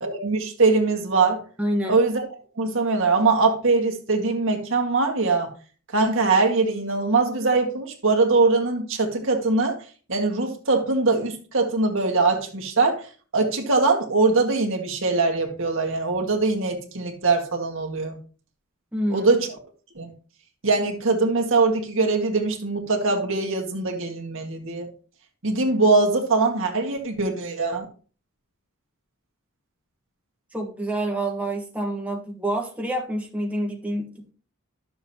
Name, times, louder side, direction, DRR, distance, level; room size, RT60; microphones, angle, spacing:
voice 1, 0.0-1.4 1.9-2.2 2.6-5.5 5.9-9.8 10.1-13.0 13.3-18.2 19.1-19.5 20.0-20.1 20.6-24.9 25.4-27.9, right 3 dB, 65° right, 1.9 m, -22 dB
voice 2, 1.6-2.0 18.9-19.3 30.5-34.3, right 1 dB, 5° right, 1.4 m, -27 dB
12.0 x 7.0 x 2.9 m
head